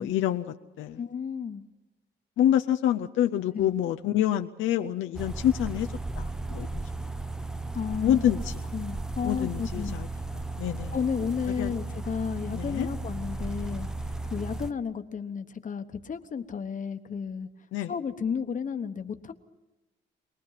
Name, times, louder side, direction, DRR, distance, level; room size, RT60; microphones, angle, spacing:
voice 1, 0.0-1.0 2.4-5.9 6.2-6.8 8.0-8.4 9.2-10.1 10.6-10.9 11.6-11.7 12.5-12.9 17.7-17.9, left 11 dB, 80° left, 6 dB, 0.6 m, -27 dB
voice 2, 1.0-1.6 3.5-3.7 7.7-8.2 8.7-9.9 10.9-13.9 14.3-17.5 17.9-19.3, left 6 dB, 40° left, 8 dB, 1.2 m, -32 dB
sound 1, 5.1-14.7, right 2 dB, 5° right, 0.7 m, -35 dB
23.5 x 19.0 x 5.8 m, 1.1 s
cardioid pair, 90°, 20 cm